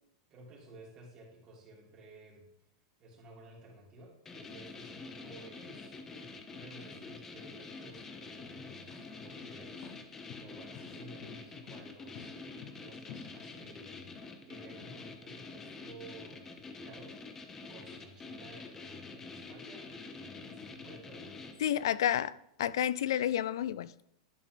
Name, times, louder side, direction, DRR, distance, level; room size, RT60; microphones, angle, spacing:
voice 1, 0.3-2.5 3.0-6.0 6.5-10.0 10.3-21.5, right 1 dB, 30° right, -3 dB, 2.7 m, -54 dB
sound 1, 4.3-22.0, left 3 dB, 15° left, 0.7 m, -47 dB
sound 2, 7.9-14.2, left 7 dB, 45° left, 0.8 m, -52 dB
voice 2, 21.6-22.3 22.6-23.9, left 10 dB, 80° left, 18 dB, 0.4 m, -30 dB
11.0 x 4.9 x 3.5 m, 0.78 s
supercardioid pair, 155°, 2 cm